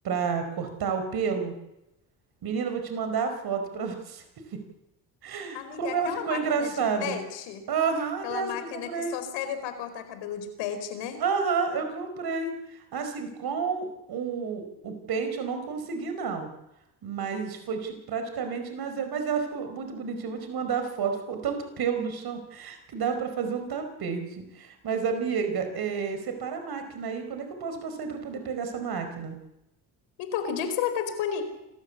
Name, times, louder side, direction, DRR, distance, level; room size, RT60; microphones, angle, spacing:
voice 1, 0.0-1.5 2.4-4.2 4.5-4.6 5.2-7.2 7.7-9.2 11.2-16.5 17.0-29.4, right 6 dB, 60° right, 7 dB, 5.1 m, -30 dB
voice 2, 5.5-6.7 7.0-7.6 8.2-11.2 30.2-31.4, left 8 dB, 80° left, 9 dB, 4.7 m, -32 dB
28.5 x 14.0 x 8.5 m, 0.91 s
supercardioid pair, 75°, 43 cm